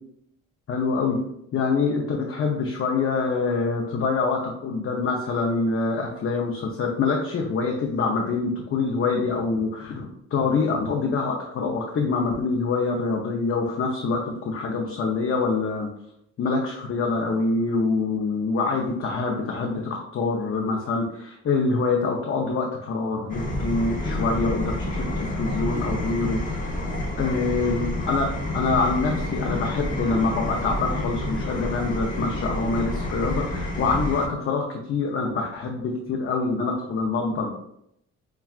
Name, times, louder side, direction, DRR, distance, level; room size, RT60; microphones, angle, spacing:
voice 1, 0.7-1.2 1.5-15.9 16.4-26.7 27.2-37.5, left 4 dB, 45° left, 1 dB, 0.6 m, -25 dB
sound 1, 23.3-34.3, left 1 dB, 25° left, 1.0 m, -29 dB
5.4 x 2.3 x 2.4 m, 0.75 s
cardioid pair, 90°, 30 cm